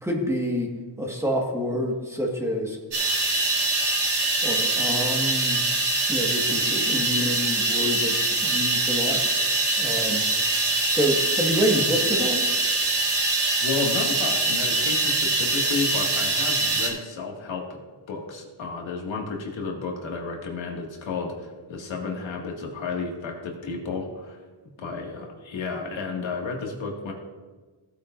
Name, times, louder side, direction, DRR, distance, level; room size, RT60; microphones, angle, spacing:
voice 1, 0.0-3.8 4.4-5.6 6.1-9.2 9.8-10.3 10.9-12.5, equal, 5° right, -1 dB, 1.6 m, -28 dB
sound 1, 2.9-16.9, right 2 dB, 60° right, 2.8 m, -24 dB
voice 2, 13.6-17.8 18.1-24.4 24.8-27.1, left 4 dB, 90° left, 0 dB, 2.1 m, -32 dB
17.0 x 8.5 x 2.6 m, 1.3 s
wide cardioid pair, 135°, 45 cm